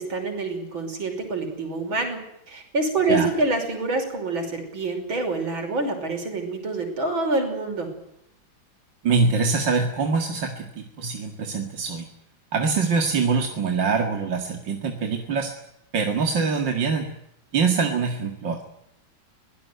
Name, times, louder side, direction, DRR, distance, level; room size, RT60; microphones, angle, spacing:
voice 1, 0.0-2.2 2.5-7.9, right 3 dB, 85° right, 4 dB, 6.3 m, -26 dB
voice 2, 9.0-12.1 12.5-15.5 15.9-17.1 17.5-18.6, right 4 dB, 70° right, 3 dB, 2.8 m, -24 dB
23.5 x 18.0 x 9.4 m, 0.79 s
omnidirectional pair, 2.1 m